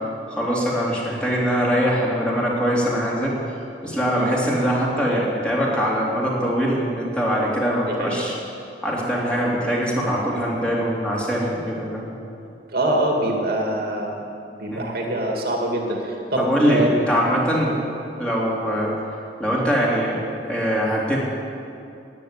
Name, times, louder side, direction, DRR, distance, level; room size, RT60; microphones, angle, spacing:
voice 1, 0.3-3.3 3.8-8.3 8.8-12.1 14.7-14.9 16.4-18.9 19.4-21.2, equal, 5° left, -5 dB, 3.1 m, -22 dB
voice 2, 7.9-8.4 11.4-11.5 12.7-14.2 14.5-16.9 17.6-17.8, right 1 dB, 60° right, 0 dB, 2.5 m, -25 dB
14.0 x 9.3 x 9.8 m, 2.6 s
head